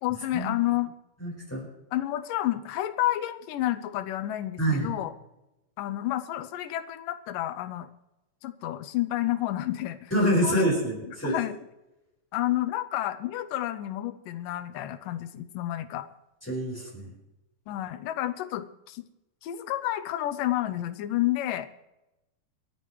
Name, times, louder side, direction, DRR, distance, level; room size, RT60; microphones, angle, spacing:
voice 1, 0.0-0.9 1.9-5.1 5.8-7.9 8.4-10.1 10.4-10.6 11.1-11.6 12.3-16.1 17.7-19.0 19.4-21.7, left 14 dB, 85° left, 12 dB, 2.4 m, -30 dB
voice 2, 1.2-1.7 4.6-4.9 10.1-11.3 16.5-17.1, equal, 5° left, -3 dB, 4.5 m, -26 dB
27.0 x 9.9 x 3.1 m, 0.95 s
omnidirectional pair, 3.8 m